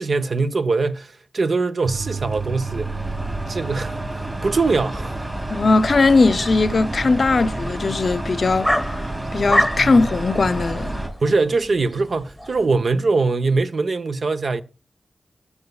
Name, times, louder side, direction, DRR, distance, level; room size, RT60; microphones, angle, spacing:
voice 1, 0.0-2.9 3.5-5.2 9.8-9.9 11.2-14.6, right 3 dB, 65° right, 0.7 m, -22 dB
sound 1, 1.8-11.1, right 2 dB, 25° right, 3.0 m, -29 dB
sound 2, 4.8-12.7, left 1 dB, ahead, 1.1 m, -29 dB
voice 2, 5.5-8.7 9.3-11.0, left 3 dB, 60° left, 0.5 m, -19 dB
18.5 x 7.0 x 2.3 m
cardioid pair, 60°, 0 cm